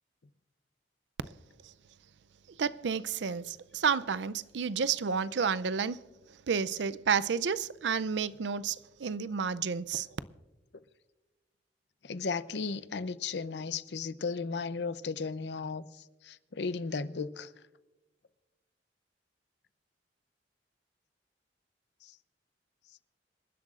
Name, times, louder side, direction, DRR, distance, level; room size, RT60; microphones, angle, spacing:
voice 1, 2.6-6.0 6.5-10.1, right 6 dB, 80° right, 0.5 m, -30 dB
voice 2, 12.0-17.5 22.0-22.2, left 4 dB, 70° left, 0.6 m, -35 dB
27.0 x 11.5 x 2.5 m
head